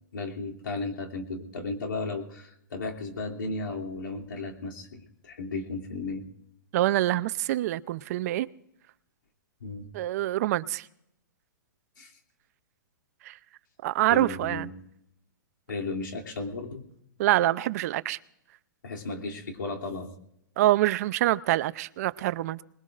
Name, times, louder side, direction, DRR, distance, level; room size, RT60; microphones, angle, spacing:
voice 1, 0.1-6.3 9.6-9.9 12.0-12.1 14.1-14.7 15.7-16.9 18.8-20.1, left 3 dB, 85° left, 2.9 m, -35 dB
voice 2, 6.7-8.5 9.9-10.9 13.2-13.4 13.8-14.7 17.2-18.2 20.6-22.6, right 15 dB, 50° right, 0.6 m, -25 dB
26.0 x 21.0 x 2.5 m
hypercardioid pair, 130°, 11 cm